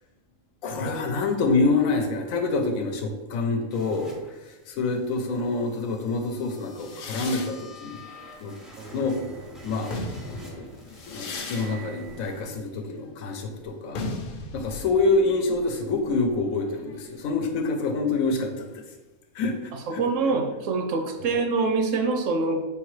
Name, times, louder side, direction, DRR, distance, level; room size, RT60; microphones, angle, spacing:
voice 1, 0.6-4.1 4.4-8.0 8.4-8.5 8.9-9.2 9.6-9.9 10.2-10.7 11.1-14.1 14.5-18.8 19.3-20.0, left 3 dB, 80° left, 4 dB, 1.1 m, -26 dB
sound 1, 3.7-12.4, right 1 dB, ahead, 0.3 m, -46 dB
sound 2, 6.8-9.2 9.7-17.2, left 3 dB, 60° left, 0.5 m, -38 dB
voice 2, 19.9-22.7, right 4 dB, 70° right, 5 dB, 0.9 m, -25 dB
4.7 x 3.5 x 3.1 m, 1.1 s
omnidirectional pair, 1.4 m